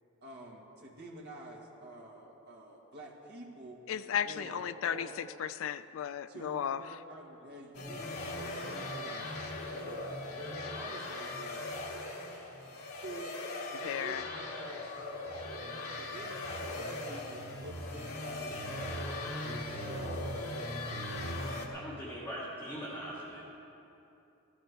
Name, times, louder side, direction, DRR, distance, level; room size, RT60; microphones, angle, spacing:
voice 1, 0.2-3.8 4.2-5.2 6.3-11.6 13.0-13.3 13.7-14.8 15.9-19.2 19.4-21.3, right 1 dB, 50° right, -2 dB, 1.8 m, -48 dB
voice 2, 3.9-5.1 5.4-6.8 13.8-14.2, left 9 dB, 65° left, 15 dB, 0.3 m, -34 dB
sound 1, 7.7-21.7, left 2 dB, 80° left, 1.6 m, -39 dB
voice 3, 21.7-23.5, equal, 10° left, -9 dB, 2.2 m, -41 dB
15.5 x 12.0 x 4.6 m, 2.9 s
head